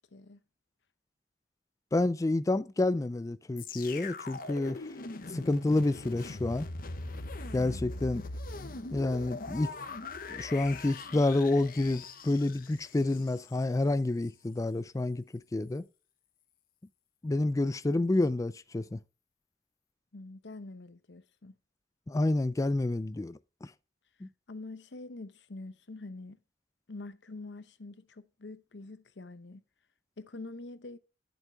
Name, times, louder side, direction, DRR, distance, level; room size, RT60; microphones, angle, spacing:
voice 1, 1.9-4.9 5.3-6.7 7.5-8.2 8.9-9.7 10.3-15.2 15.5-15.8 17.2-19.0 22.1-23.7 24.2-24.3, left 2 dB, 20° left, 0.3 m, -29 dB
sound 1, 3.6-13.6 14.2-14.3, left 3 dB, 55° left, 1.0 m, -41 dB
voice 2, 20.1-21.5 24.5-26.4 26.9-29.6 30.2-31.0, left 2 dB, 85° left, 0.8 m, -45 dB
11.0 x 7.2 x 3.5 m
head